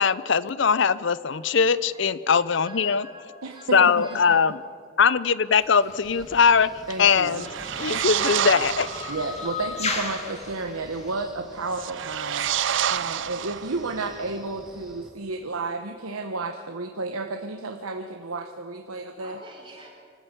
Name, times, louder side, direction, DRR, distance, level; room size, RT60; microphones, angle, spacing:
voice 1, 0.0-3.1 3.7-4.5 5.0-6.7 7.0-7.5 7.8-9.1, left 6 dB, 60° left, 18 dB, 0.5 m, -21 dB
voice 2, 1.9-4.5 19.2-19.9, equal, 25° right, -1 dB, 3.9 m, -47 dB
voice 3, 3.4-4.1 6.9-7.4 9.1-12.5 12.9-19.4, right 3 dB, 90° right, 5 dB, 1.1 m, -32 dB
sound 1, 5.5-11.1, left 4 dB, 30° left, 2.2 m, -36 dB
Wind, 5.9-15.1, equal, ahead, 1.7 m, -48 dB
sound 2, 7.2-9.3 11.7-14.0, right 10 dB, 60° right, 0.4 m, -28 dB
25.0 x 13.5 x 8.4 m, 2.3 s
head